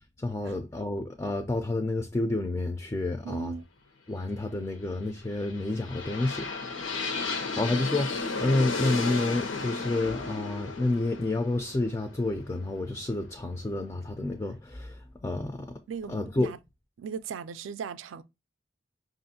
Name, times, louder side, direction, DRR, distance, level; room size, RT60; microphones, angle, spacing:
voice 1, 0.2-3.5 4.1-6.5 7.4-15.7 16.1-16.5, left 2 dB, 15° left, 0.3 m, -29 dB
voice 2, 3.2-3.7 7.5-7.7 15.9-16.6 17.0-18.2, right 6 dB, 85° right, 0.4 m, -38 dB
sound 1, 5.2-13.2, left 4 dB, 90° left, 0.8 m, -34 dB
5.4 x 2.5 x 2.6 m
head